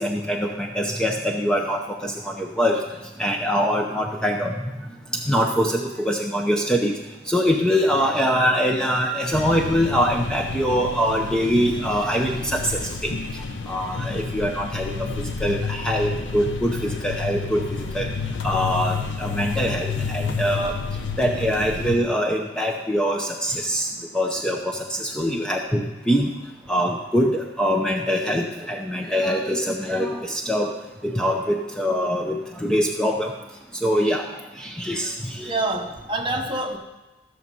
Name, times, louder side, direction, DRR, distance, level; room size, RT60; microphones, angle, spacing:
voice 1, 0.0-2.8 3.2-4.5 5.3-6.9 7.3-13.1 13.7-18.1 18.4-20.7 21.2-23.9 24.1-26.3 26.7-30.7 31.0-33.3 33.8-34.3 34.6-35.5, equal, 5° left, 1 dB, 0.6 m, -23 dB
sound 1, 9.3-22.0, left 4 dB, 75° left, 0.7 m, -30 dB
voice 2, 35.4-36.8, right 2 dB, 25° right, 2 dB, 1.1 m, -26 dB
14.0 x 6.5 x 5.4 m, 1.0 s
head